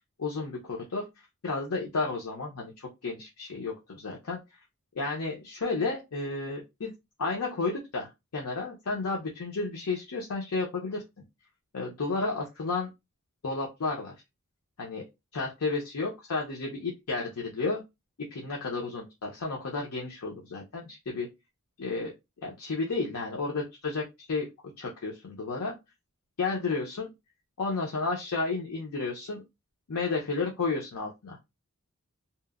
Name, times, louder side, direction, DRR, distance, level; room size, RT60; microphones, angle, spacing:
voice 1, 0.2-1.0 1.4-4.4 4.9-6.9 7.2-11.0 11.7-12.9 13.4-14.1 14.8-15.0 15.3-17.8 18.2-21.3 21.8-22.1 22.4-24.5 24.8-25.7 26.4-27.1 27.6-29.4 29.9-31.4, left 3 dB, 80° left, -1 dB, 0.6 m, -32 dB
2.8 x 2.1 x 2.4 m, 0.22 s
head